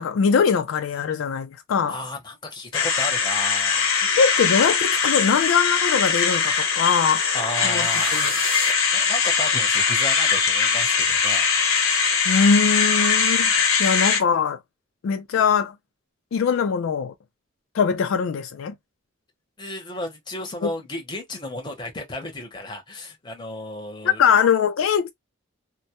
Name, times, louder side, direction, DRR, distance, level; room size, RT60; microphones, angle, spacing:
voice 1, 0.0-2.0 4.2-7.3 7.6-8.3 12.3-13.5 13.8-14.6 15.0-15.7 16.3-17.1 17.7-18.7 20.6-20.7 24.0-25.1, left 6 dB, 75° left, 0.3 m, -21 dB
voice 2, 1.9-4.0 6.8-6.9 7.3-8.6 8.9-11.4 19.6-24.2, left 1 dB, 20° left, 0.7 m, -34 dB
sound 1, 2.7-14.2, left 6 dB, 90° left, 0.8 m, -21 dB
sound 2, 7.5-8.7, right 5 dB, 45° right, 0.8 m, -34 dB
2.2 x 2.1 x 2.8 m
head